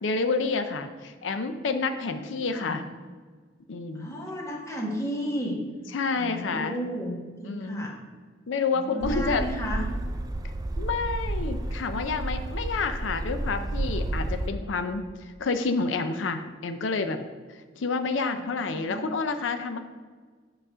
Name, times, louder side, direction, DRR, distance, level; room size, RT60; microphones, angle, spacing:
voice 1, 0.0-2.8 3.7-4.1 5.9-6.8 7.4-7.9 8.5-9.4 10.8-15.0 15.4-17.2 17.7-19.8, left 4 dB, 90° left, 8 dB, 0.5 m, -29 dB
voice 2, 2.1-2.8 3.9-5.6 6.1-8.0 8.7-9.9 18.3-19.0, equal, 15° left, -2 dB, 1.4 m, -34 dB
sound 1, 9.0-14.5, right 1 dB, 20° right, 0.4 m, -31 dB
7.8 x 4.1 x 6.1 m, 1.5 s
head